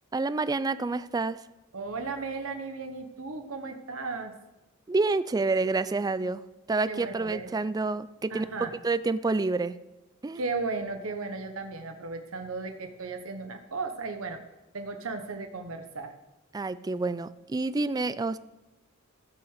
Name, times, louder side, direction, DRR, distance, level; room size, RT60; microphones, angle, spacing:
voice 1, 0.1-1.4 4.9-6.4 6.7-8.5 8.8-9.7 10.2-10.4 16.5-18.4, right 3 dB, 20° right, 15 dB, 0.3 m, -28 dB
voice 2, 1.7-4.3 6.9-7.5 8.3-8.7 10.3-14.4 14.7-16.1, right 3 dB, 75° right, 6 dB, 1.0 m, -35 dB
15.5 x 5.8 x 6.5 m, 0.99 s
head